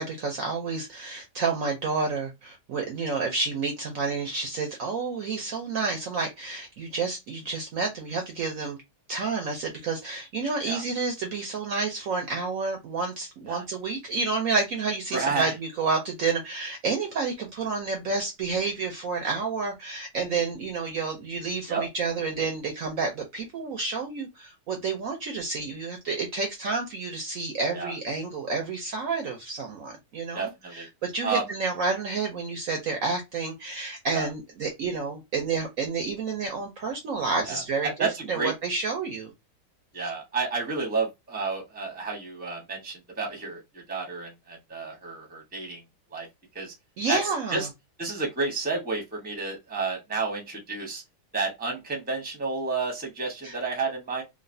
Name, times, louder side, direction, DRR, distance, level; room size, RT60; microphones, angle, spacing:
voice 1, 0.0-8.8 9.1-39.3 40.0-40.1 47.0-47.7 53.4-53.5, right 4 dB, 65° right, 0.9 m, -30 dB
voice 2, 15.1-15.5 21.7-21.9 27.7-27.9 30.3-30.9 31.2-31.4 34.1-34.3 37.5-38.5 39.9-45.8 46.1-46.3 46.5-46.7 47.1-47.2 47.5-47.7 48.0-51.0 51.3-54.2, right 4 dB, 5° right, 0.8 m, -31 dB
3.1 x 2.6 x 2.6 m
omnidirectional pair, 1.8 m